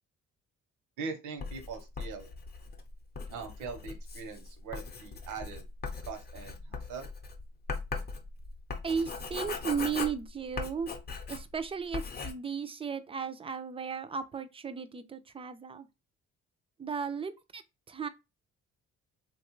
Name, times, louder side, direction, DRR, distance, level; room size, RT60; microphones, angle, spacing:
voice 1, 1.0-2.3 3.3-5.6 6.1-7.1, right 5 dB, 80° right, 0.8 m, -41 dB
Writing, 1.4-11.6 11.9-12.3, left 4 dB, 30° left, 0.6 m, -39 dB
voice 2, 8.8-10.9 11.3-15.9 16.8-17.6 17.9-18.1, right 6 dB, 20° right, 0.3 m, -35 dB
3.1 x 2.3 x 3.0 m
cardioid pair, 90°, 30 cm